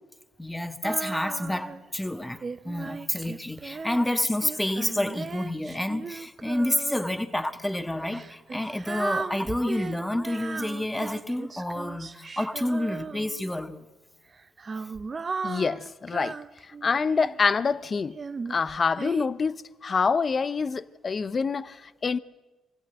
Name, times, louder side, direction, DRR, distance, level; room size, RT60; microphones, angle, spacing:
voice 1, 0.4-13.8, left 1 dB, 10° left, 1.6 m, -29 dB
Female singing, 0.8-1.9 2.4-7.2 8.0-13.6 14.3-17.5 18.1-19.3, right 4 dB, 35° right, 0.7 m, -37 dB
voice 2, 15.4-16.3 16.6-18.2 18.5-22.2, left 5 dB, 40° left, 0.8 m, -26 dB
25.5 x 16.5 x 8.9 m
cardioid pair, 90°, 0 cm